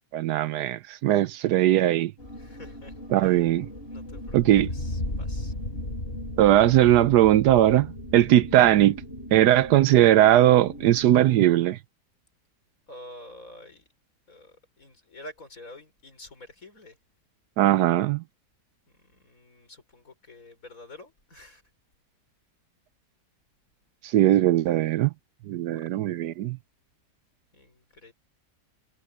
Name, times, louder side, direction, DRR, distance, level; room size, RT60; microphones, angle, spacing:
voice 1, 0.1-2.1 3.1-3.7 4.3-4.7 6.4-7.9 8.1-9.0 9.3-11.8 17.6-18.2 24.1-25.1 25.5-26.6, right 13 dB, 80° right, 1.2 m, -19 dB
sound 1, 2.2-11.6, left 1 dB, 35° left, 5.7 m, -37 dB
voice 2, 2.3-3.5 3.9-4.4 4.7-5.5 12.9-13.8 14.3-17.0 18.9-21.6 25.7-25.8 27.5-28.1, left 1 dB, 55° left, 5.9 m, -48 dB
omnidirectional pair, 1.8 m